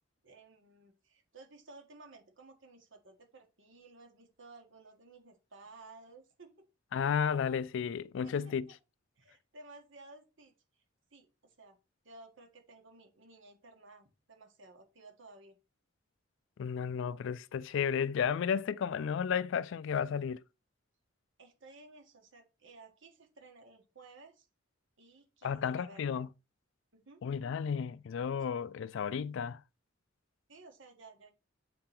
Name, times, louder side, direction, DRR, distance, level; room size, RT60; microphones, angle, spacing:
voice 1, 0.2-6.5 8.2-8.3 9.2-10.5 11.1-11.8 12.0-15.6 21.4-24.5 25.0-26.2 26.9-27.2 30.5-31.3, right 3 dB, 70° right, 1.6 m, -55 dB
voice 2, 6.9-8.6 16.6-20.4 25.4-26.3 27.2-29.6, left 7 dB, 70° left, 0.3 m, -33 dB
7.6 x 3.8 x 4.3 m
head